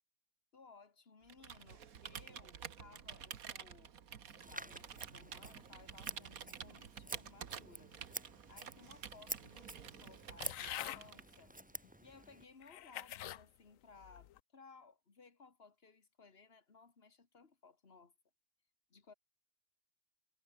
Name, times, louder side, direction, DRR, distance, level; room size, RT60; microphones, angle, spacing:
voice 1, 0.5-3.9 4.3-7.9 8.5-18.1 18.9-19.1, left 4 dB, 45° left, 2.2 m, -61 dB
Computer keyboard, 1.3-11.6, right 8 dB, 85° right, 1.7 m, -50 dB
Scissors, 4.4-12.4, right 1 dB, 10° right, 0.5 m, -49 dB
sound 1, 10.4-11.0 11.8-11.9 12.6-13.4 14.0-14.4, left 12 dB, 75° left, 1.1 m, -45 dB
omnidirectional pair, 1.5 m